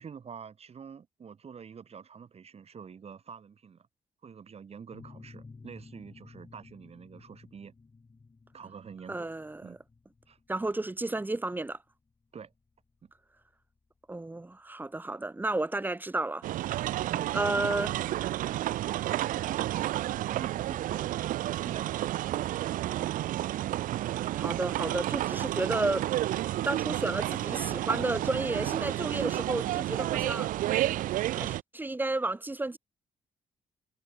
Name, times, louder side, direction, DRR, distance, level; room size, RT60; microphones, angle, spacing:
voice 1, 0.0-3.9 4.2-7.7 8.5-9.3 9.6-9.8 10.3-10.4 12.3-12.5 13.0-13.1 17.0-18.7 19.0-21.2 21.6-23.1, right 6 dB, 50° right, 3.4 m, -47 dB
sound 1, 4.9-14.3, left 4 dB, 30° left, 3.0 m, -54 dB
voice 2, 9.1-9.8 10.5-11.8 14.1-16.4 16.7-16.8 17.3-17.9 24.3-26.1 26.3-30.5 31.3-32.8, right 2 dB, 15° right, 0.9 m, -32 dB
sound 2, 16.4-31.6, right 14 dB, 90° right, 0.6 m, -31 dB
cardioid pair, 85°, 13 cm